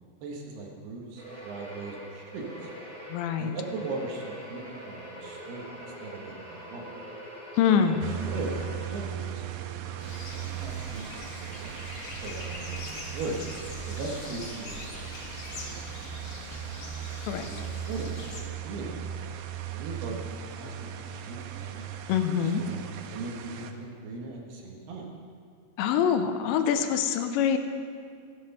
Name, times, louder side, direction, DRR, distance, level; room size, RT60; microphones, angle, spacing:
voice 1, 0.2-2.7 3.4-6.9 7.9-11.7 12.2-12.8 13.1-13.4 13.9-16.5 17.4-19.3 19.7-22.0 22.3-25.1, right 3 dB, 70° right, 0 dB, 3.2 m, -39 dB
sound 1, 1.2-9.4, right 1 dB, ahead, 3.3 m, -44 dB
voice 2, 3.1-3.5 7.6-8.1 17.2-17.5 22.1-22.6 25.8-27.6, left 8 dB, 85° left, 7 dB, 2.9 m, -25 dB
sound 2, 8.0-23.7, right 8 dB, 85° right, 2.9 m, -38 dB
sound 3, 10.0-18.4, left 2 dB, 70° left, 1.4 m, -42 dB
15.0 x 9.5 x 5.5 m, 2.2 s
omnidirectional pair, 5.1 m